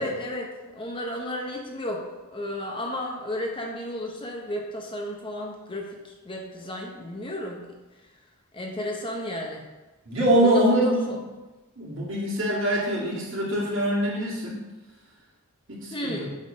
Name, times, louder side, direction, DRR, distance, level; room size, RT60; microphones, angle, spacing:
voice 1, 0.0-7.7 8.5-9.6 10.4-11.2 15.9-16.3, left 1 dB, 25° left, 0 dB, 0.8 m, -33 dB
voice 2, 10.1-11.2 11.8-14.6 15.7-16.3, right 1 dB, 60° right, -5 dB, 2.1 m, -24 dB
8.1 x 3.6 x 5.2 m, 1.1 s
head